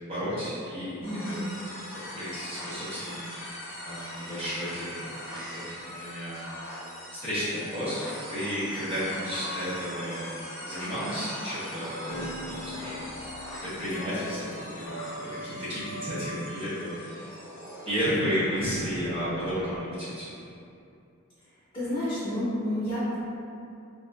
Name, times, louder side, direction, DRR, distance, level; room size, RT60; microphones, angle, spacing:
voice 1, 0.0-1.4 2.1-3.2 3.8-6.4 7.2-10.2 10.6-13.0 13.6-17.3 17.9-20.2, equal, 25° right, -13 dB, 0.6 m, -33 dB
sound 1, 1.0-18.0, equal, 65° left, 0.7 m, -41 dB
voice 2, 1.0-1.6 21.7-23.2, left 1 dB, 25° left, -14 dB, 0.7 m, -30 dB
sound 2, 8.9-19.8, equal, 90° left, 0.4 m, -43 dB
2.6 x 2.3 x 2.2 m, 2.6 s
head